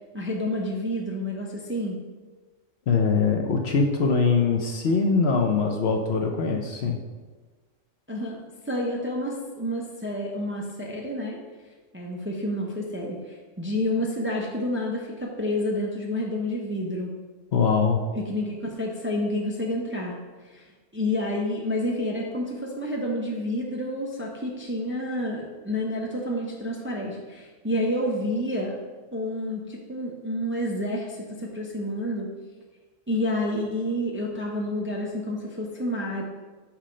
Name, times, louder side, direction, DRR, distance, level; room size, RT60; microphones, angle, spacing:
voice 1, 0.1-2.0 8.1-8.4 8.7-11.4 11.9-17.1 18.1-20.2 20.5-20.6 20.9-28.8 29.1-32.3 33.1-36.2, left 1 dB, 10° right, -1 dB, 0.6 m, -29 dB
voice 2, 2.9-7.0 17.5-18.0, left 5 dB, 60° left, 3 dB, 0.8 m, -22 dB
5.9 x 4.4 x 5.0 m, 1.3 s
omnidirectional pair, 1.4 m